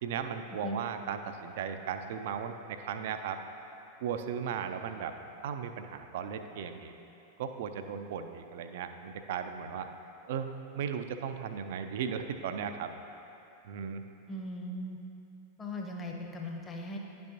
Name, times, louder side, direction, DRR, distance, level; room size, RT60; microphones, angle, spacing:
voice 1, 0.0-3.4 4.0-5.1 5.4-6.9 7.4-9.9 10.3-12.9 13.6-14.0, right 7 dB, 55° right, 8 dB, 0.4 m, -36 dB
voice 2, 14.3-15.0 15.6-17.0, left 1 dB, 20° left, 1 dB, 0.8 m, -38 dB
10.5 x 5.4 x 2.8 m, 2.8 s
figure-of-eight pair, 90°, 0 cm